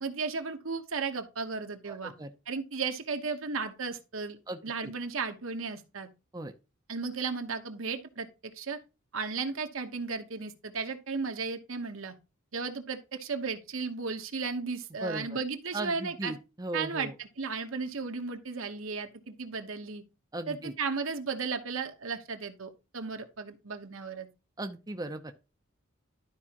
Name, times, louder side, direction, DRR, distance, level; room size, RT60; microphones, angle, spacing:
voice 1, 0.0-2.1 2.5-4.4 4.6-6.1 6.9-8.8 9.1-12.1 12.5-16.4 16.7-20.0 20.5-24.3, right 4 dB, 75° right, 1.1 m, -35 dB
voice 2, 1.9-2.3 4.5-4.9 6.3-6.5 15.0-15.4 15.7-17.1 20.3-20.7 24.6-25.3, right 2 dB, 20° right, 0.6 m, -37 dB
12.0 x 4.8 x 2.9 m
head